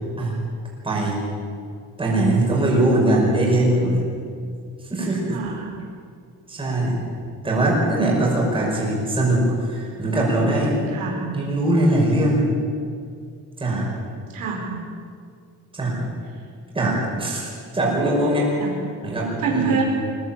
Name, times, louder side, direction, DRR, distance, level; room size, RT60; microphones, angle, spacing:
voice 1, 0.8-1.2 2.0-4.0 4.9-5.4 6.5-7.0 7.4-10.8 11.3-12.4 13.6-13.9 15.7-16.1 16.7-18.5 19.0-19.8, right 1 dB, 15° right, -3 dB, 5.7 m, -21 dB
voice 2, 5.3-5.7 10.7-11.2 14.3-14.7 18.6-18.7 19.4-19.8, right 5 dB, 65° right, 0 dB, 4.4 m, -26 dB
22.5 x 17.5 x 8.8 m, 2.3 s
cardioid pair, 175°, 36 cm